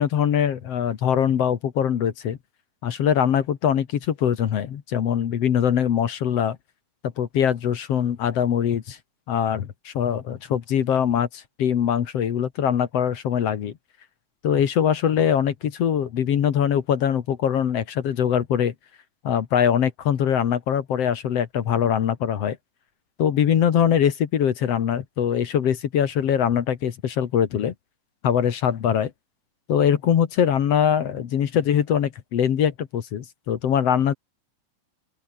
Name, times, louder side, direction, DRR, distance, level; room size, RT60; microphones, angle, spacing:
voice 1, 0.0-2.4 2.8-6.6 7.2-9.0 9.3-13.7 14.4-18.7 19.2-22.6 23.2-27.7 28.2-29.1 29.7-34.1, left 9 dB, 55° left, 2.2 m, -22 dB
open air
omnidirectional pair, 4.0 m